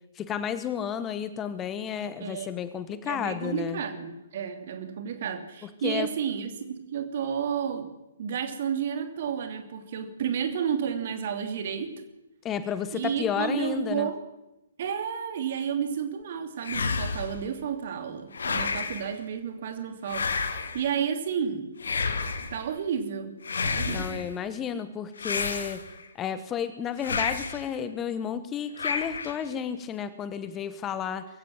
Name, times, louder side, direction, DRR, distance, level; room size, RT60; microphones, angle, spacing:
voice 1, 0.1-3.8 5.6-6.1 12.4-14.1 23.8-25.8 26.2-31.3, left 8 dB, 15° left, 12 dB, 1.1 m, -32 dB
voice 2, 2.2-2.5 3.0-7.9 8.2-12.0 12.9-14.2 14.8-21.7 22.5-23.4 23.6-24.3, right 8 dB, 45° right, 8 dB, 2.8 m, -31 dB
sound 1, 16.6-17.4 18.3-19.1 20.1-20.9 21.8-22.6 23.4-24.3 25.2-26.1 27.0-27.7 28.8-29.5, left 4 dB, 60° left, 2.1 m, -30 dB
22.5 x 15.5 x 7.6 m, 0.95 s
figure-of-eight pair, 125°, 0 cm